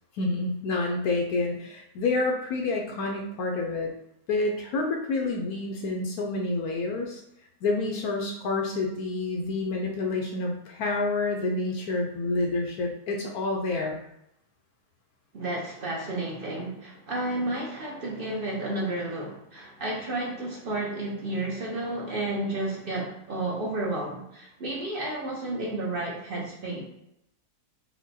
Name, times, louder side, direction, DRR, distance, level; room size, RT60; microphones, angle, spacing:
voice 1, 0.1-3.9 4.3-7.2 7.6-14.0, left 3 dB, 70° left, 0 dB, 1.0 m, -28 dB
voice 2, 15.3-26.8, right 2 dB, 50° right, -3 dB, 0.7 m, -32 dB
4.4 x 2.2 x 4.1 m, 0.81 s
omnidirectional pair, 1.7 m